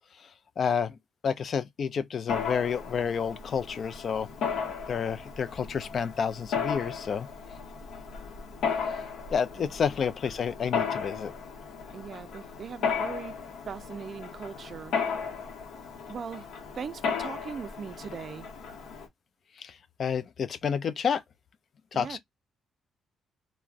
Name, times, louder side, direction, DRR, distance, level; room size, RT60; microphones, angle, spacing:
voice 1, 0.6-0.9 1.2-4.3 4.9-7.3 9.3-11.3 19.6-21.2 21.9-22.2, left 7 dB, 55° left, 0.4 m, -30 dB
Mechanisms, 2.3-19.1, left 6 dB, 75° left, 0.8 m, -35 dB
voice 2, 11.9-15.0 16.1-16.5 16.7-18.5 21.9-22.2, right 6 dB, 50° right, 0.3 m, -40 dB
2.4 x 2.1 x 3.3 m
cardioid pair, 90°, 0 cm